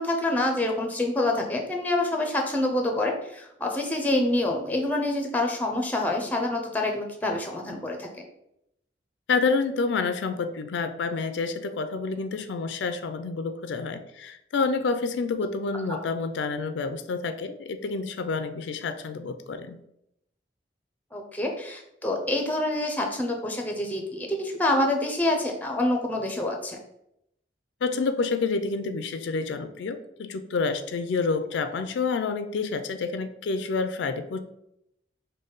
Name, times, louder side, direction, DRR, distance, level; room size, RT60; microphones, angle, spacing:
voice 1, 0.0-8.1 15.9-16.0 21.1-26.8, left 1 dB, 10° left, 2 dB, 0.5 m, -27 dB
voice 2, 9.3-19.8 27.8-34.4, left 4 dB, 80° left, 9 dB, 0.4 m, -28 dB
5.3 x 2.2 x 3.8 m, 0.80 s
head